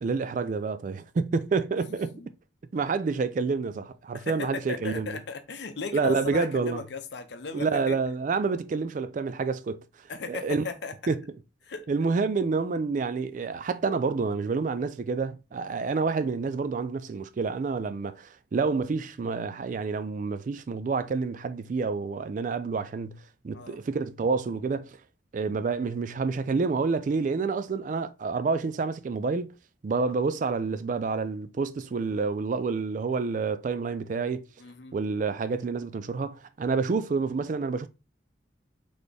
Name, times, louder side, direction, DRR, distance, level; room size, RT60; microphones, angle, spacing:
voice 1, 0.0-2.2 2.7-5.2 5.9-6.8 7.5-9.8 10.3-10.7 11.1-11.2 11.9-23.2 23.4-25.0 25.3-29.5 29.8-34.5 34.9-37.9, right 4 dB, 45° right, 0.3 m, -28 dB
voice 2, 1.8-2.3 4.1-8.0 10.1-10.9 11.6-11.9 23.5-23.8 34.6-35.0, left 4 dB, 60° left, 0.6 m, -37 dB
4.1 x 3.4 x 3.3 m
head